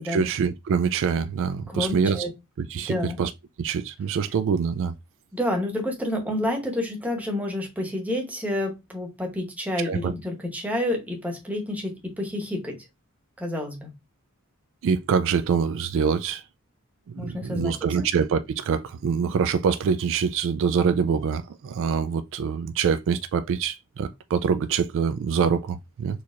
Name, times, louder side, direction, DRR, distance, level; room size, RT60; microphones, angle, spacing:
voice 1, 0.0-2.3 2.6-3.3 3.6-4.9 9.9-10.1 14.8-16.4 17.1-26.2, right 6 dB, 60° right, 0.3 m, -25 dB
voice 2, 1.7-2.3 2.9-3.2 5.3-12.8 13.4-13.9 17.2-18.1, left 1 dB, 5° right, 0.9 m, -29 dB
4.2 x 2.9 x 2.4 m
head